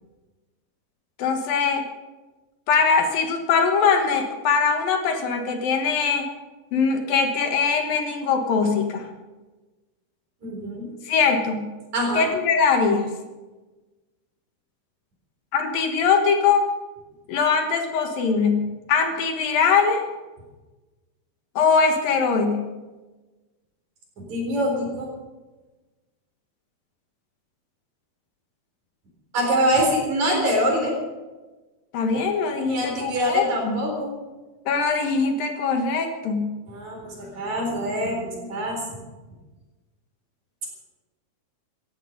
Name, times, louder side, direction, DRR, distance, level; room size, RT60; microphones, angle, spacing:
voice 1, 1.2-1.9 2.7-6.3 6.7-9.1 11.0-11.7 12.1-13.1 15.5-16.7 17.3-20.0 21.6-22.7 31.9-33.8 34.7-36.5, left 5 dB, 70° left, 5 dB, 3.0 m, -22 dB
voice 2, 10.4-10.9 11.9-12.3 24.2-25.1 29.3-31.0 32.6-34.1 36.7-38.8, equal, 50° right, 1 dB, 5.3 m, -24 dB
17.0 x 14.5 x 5.3 m, 1.2 s
omnidirectional pair, 4.5 m